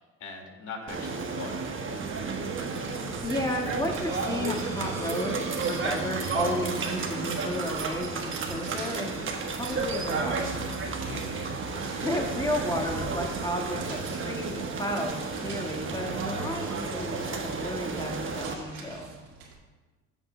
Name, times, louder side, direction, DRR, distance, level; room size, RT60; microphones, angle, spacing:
voice 1, 0.2-2.3 9.7-10.2 11.0-11.5 12.5-12.9, left 4 dB, 55° left, 2 dB, 2.1 m, -43 dB
sound 1, 0.9-18.5, right 4 dB, 35° right, 1.2 m, -32 dB
sound 2, 2.4-19.5, right 4 dB, 70° right, 2.1 m, -46 dB
voice 2, 2.9-9.1 9.3-10.6 11.7-15.1 15.4-19.1, equal, 10° left, 0 dB, 1.6 m, -33 dB
sound 3, 3.9-9.4, right 1 dB, 10° right, 1.5 m, -45 dB
13.0 x 7.1 x 2.2 m, 1.3 s
supercardioid pair, 90°, 36 cm